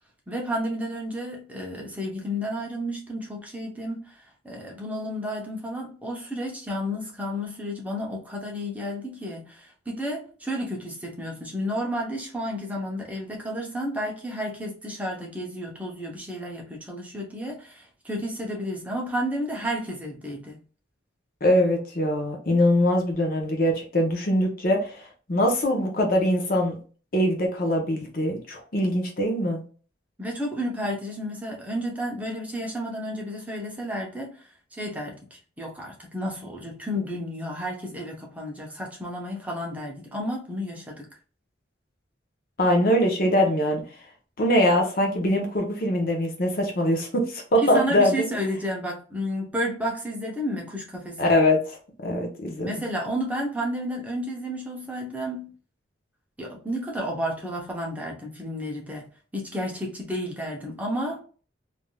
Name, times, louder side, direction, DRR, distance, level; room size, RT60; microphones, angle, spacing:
voice 1, 0.3-20.6 30.2-41.1 47.6-51.3 52.6-55.5 56.4-59.1 59.3-61.2, equal, 10° right, -2 dB, 0.7 m, -32 dB
voice 2, 21.4-26.8 27.1-29.6 42.6-43.8 44.4-48.3 51.2-52.7, left 1 dB, 50° left, 2 dB, 0.7 m, -23 dB
3.4 x 2.6 x 2.2 m, 0.39 s
head